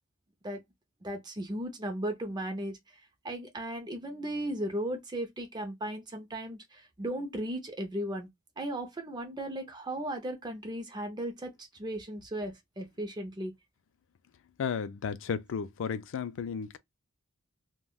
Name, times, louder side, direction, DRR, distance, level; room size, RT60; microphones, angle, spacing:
voice 1, 1.0-2.8 3.2-8.3 8.6-13.5, right 1 dB, 20° right, 0.5 m, -36 dB
voice 2, 14.6-16.8, left 6 dB, 60° left, 0.4 m, -33 dB
3.3 x 2.1 x 2.2 m
head